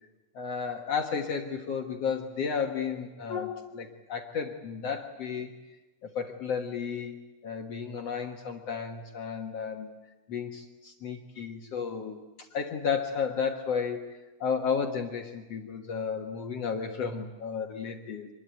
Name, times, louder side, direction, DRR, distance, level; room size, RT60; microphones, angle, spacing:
voice 1, 0.3-5.5 6.0-7.1 7.4-9.9 10.3-14.0 14.4-18.3, left 6 dB, 55° left, 3 dB, 2.3 m, -33 dB
26.0 x 21.5 x 9.2 m, 1.1 s
omnidirectional pair, 3.6 m